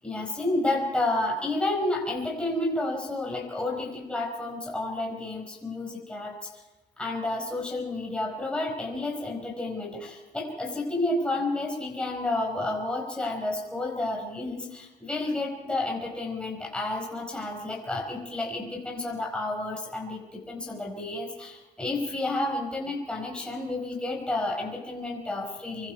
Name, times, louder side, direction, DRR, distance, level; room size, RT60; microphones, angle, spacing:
voice 1, 0.0-6.5 7.0-25.9, left 2 dB, 5° left, -1 dB, 5.0 m, -30 dB
25.5 x 24.0 x 4.6 m, 1.1 s
cardioid pair, 110°, 17 cm